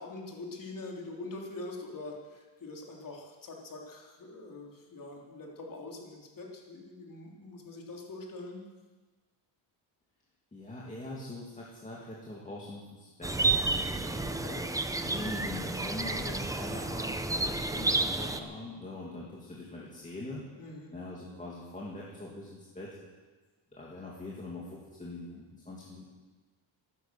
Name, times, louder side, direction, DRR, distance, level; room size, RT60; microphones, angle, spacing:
voice 1, 0.0-8.6 13.9-14.9 20.6-20.9, left 2 dB, 45° left, -1 dB, 3.3 m, -44 dB
voice 2, 10.5-13.9 14.4-14.7 15.0-20.4 20.9-23.0 23.7-26.1, left 2 dB, 15° left, -5 dB, 2.3 m, -42 dB
sound 1, 13.2-18.4, right 3 dB, 5° right, 0.6 m, -31 dB
15.0 x 12.0 x 6.9 m, 1.3 s
cardioid pair, 160°, 47 cm